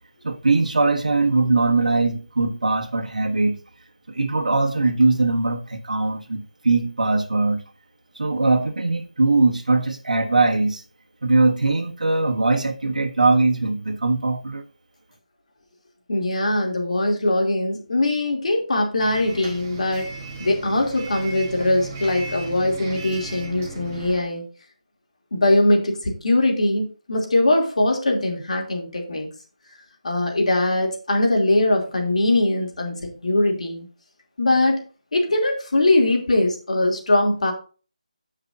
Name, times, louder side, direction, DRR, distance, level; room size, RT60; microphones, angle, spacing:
voice 1, 0.2-3.6 4.1-7.6 8.1-10.8 11.2-14.6, right 3 dB, 75° right, 1.6 m, -21 dB
voice 2, 16.1-20.1 20.4-24.5 25.3-29.3 30.0-33.9 34.4-34.8 35.1-37.5, left 2 dB, 60° left, 2.8 m, -21 dB
Bus, 19.0-24.2, right 3 dB, 20° right, 1.3 m, -36 dB
14.0 x 5.7 x 2.7 m
figure-of-eight pair, 170°, 4 cm